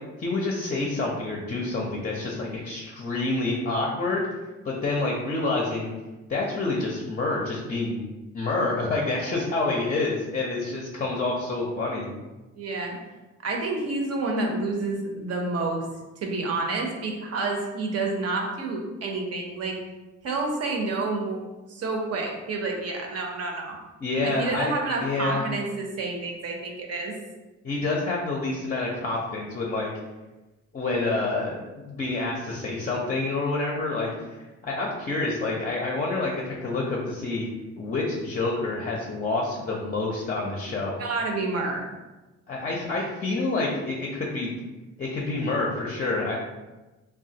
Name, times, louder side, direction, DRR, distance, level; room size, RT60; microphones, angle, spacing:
voice 1, 0.2-4.2 4.6-5.9 6.3-8.0 8.3-12.1 24.0-24.7 25.0-25.5 27.6-29.9 30.7-34.1 34.6-37.4 37.8-41.0 42.5-44.5 45.0-46.4, left 3 dB, 30° left, -2 dB, 0.5 m, -28 dB
voice 2, 12.6-13.0 13.4-15.8 16.2-19.8 20.2-21.4 21.7-23.8 24.2-27.2 41.0-41.8, right 3 dB, 55° right, 1 dB, 0.7 m, -29 dB
2.9 x 2.2 x 2.7 m, 1.1 s
cardioid pair, 90°, 30 cm